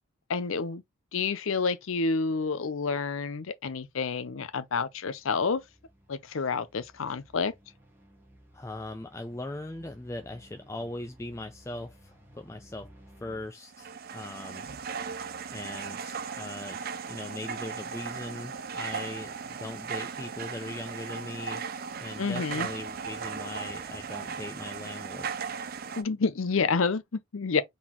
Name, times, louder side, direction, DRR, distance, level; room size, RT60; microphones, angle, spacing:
voice 1, 0.3-0.8 1.1-5.6 6.1-7.5 22.2-22.7 26.0-27.6, left 4 dB, 65° left, 0.6 m, -29 dB
sound 1, 3.9-13.5, equal, 10° right, 1.0 m, -57 dB
voice 2, 8.5-12.9 13.2-14.7 15.5-16.8 17.1-21.7 22.0-25.3, left 2 dB, 15° left, 0.4 m, -40 dB
sound 2, 13.6-26.0, right 6 dB, 45° right, 0.5 m, -37 dB
4.0 x 3.9 x 2.9 m
head